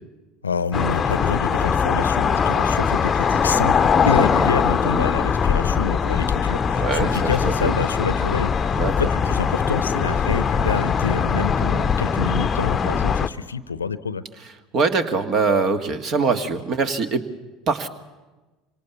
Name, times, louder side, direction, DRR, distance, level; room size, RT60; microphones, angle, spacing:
voice 1, 0.4-14.2, left 5 dB, 80° left, 16 dB, 0.8 m, -27 dB
sound 1, 0.7-13.3, left 6 dB, 25° left, 0.9 m, -21 dB
voice 2, 6.8-7.8 8.8-9.1 14.7-17.2 17.7-17.9, right 4 dB, 40° right, 9 dB, 1.9 m, -23 dB
26.0 x 25.5 x 7.1 m, 1.2 s
figure-of-eight pair, 70°, 0 cm